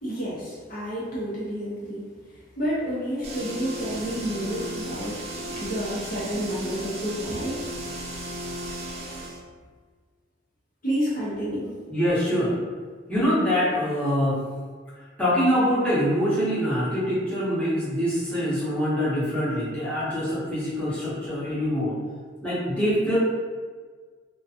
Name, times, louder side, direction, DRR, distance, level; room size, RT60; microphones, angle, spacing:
voice 1, 0.0-2.0 2.6-7.7 10.8-11.7, equal, 45° left, -8 dB, 0.6 m, -30 dB
sound 1, 3.2-9.4, right 1 dB, 30° right, 0.3 m, -35 dB
voice 2, 11.9-12.5 13.1-14.4 15.2-21.9 22.4-23.2, equal, 5° left, -11 dB, 0.8 m, -24 dB
2.4 x 2.2 x 2.6 m, 1.5 s
head